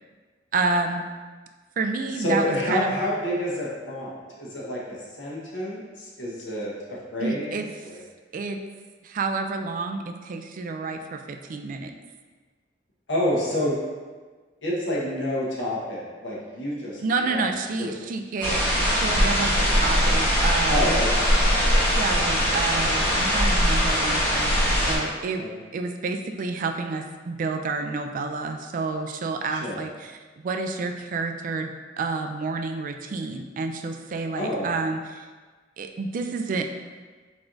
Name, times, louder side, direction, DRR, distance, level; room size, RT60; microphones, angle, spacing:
voice 1, 0.5-1.0 1.8-2.9 7.2-7.7 8.3-8.6 9.0-12.0 17.0-21.0 22.0-35.3 35.8-36.7, right 3 dB, 45° right, 5 dB, 0.3 m, -29 dB
voice 2, 2.2-8.0 13.1-13.8 14.6-17.5 17.8-17.9 20.7-21.3 25.4-25.5 29.5-29.8 34.4-34.7, left 1 dB, 80° left, -5 dB, 1.2 m, -28 dB
sound 1, 18.4-24.9, equal, 10° left, 1.1 m, -21 dB
4.4 x 4.1 x 2.6 m, 1.4 s
head